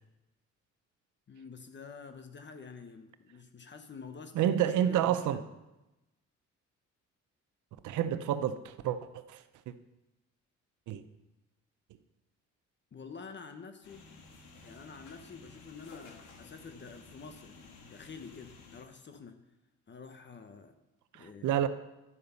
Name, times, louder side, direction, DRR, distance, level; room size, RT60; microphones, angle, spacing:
voice 1, 1.3-4.6 4.8-5.4 12.9-14.1 14.6-19.4 19.9-20.8 21.1-21.6, left 5 dB, 35° left, 7 dB, 1.0 m, -48 dB
voice 2, 4.3-5.4 7.8-9.7 10.9-11.0 21.1-21.7, right 10 dB, 80° right, 11 dB, 0.7 m, -29 dB
sound 1, 13.8-18.8, left 4 dB, 90° left, 1.6 m, -54 dB
11.0 x 5.1 x 6.9 m, 0.99 s
cardioid pair, 90°, 30 cm